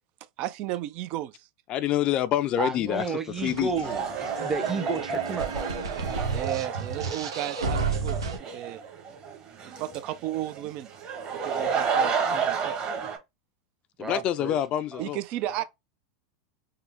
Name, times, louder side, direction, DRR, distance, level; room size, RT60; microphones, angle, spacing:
voice 1, 0.4-1.3 6.3-8.2 8.5-8.8 9.8-10.9 11.3-12.8 15.0-15.6, right 14 dB, 55° right, 0.4 m, -33 dB
voice 2, 1.7-3.0 3.4-3.7 14.0-15.2, left 11 dB, 45° left, 0.4 m, -26 dB
voice 3, 2.6-5.5 14.0-14.6 14.9-15.0 15.5-15.6, right 4 dB, 15° right, 0.8 m, -32 dB
sound 1, 3.4-8.4, right 4 dB, 90° right, 0.9 m, -32 dB
sound 2, 3.8-13.2, right 6 dB, 40° right, 1.4 m, -31 dB
3.7 x 2.1 x 3.4 m
hypercardioid pair, 100°, 3 cm